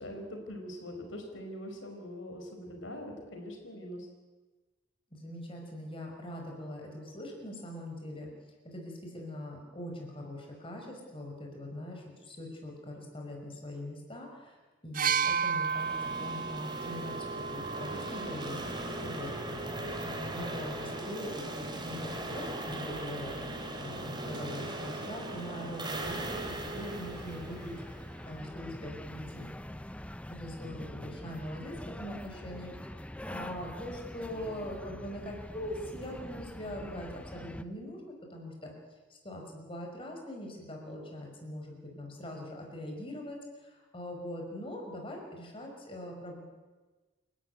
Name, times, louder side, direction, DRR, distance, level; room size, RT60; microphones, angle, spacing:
voice 1, 0.0-4.1 18.5-19.4, left 1 dB, 80° left, 3 dB, 4.7 m, -43 dB
voice 2, 5.1-8.3 8.6-14.6 14.8-18.6 19.0-19.6 20.2-27.8 28.2-29.5 30.4-38.7 39.1-46.4, left 1 dB, 30° left, 1 dB, 5.5 m, -42 dB
sound 1, 14.9-18.8 19.8-19.9, right 6 dB, 45° right, 0.7 m, -33 dB
sound 2, 15.6-28.5, right 1 dB, 25° right, 3.1 m, -39 dB
sound 3, 26.0-37.6, left 1 dB, 5° left, 0.7 m, -44 dB
28.0 x 13.0 x 9.4 m, 1.3 s
head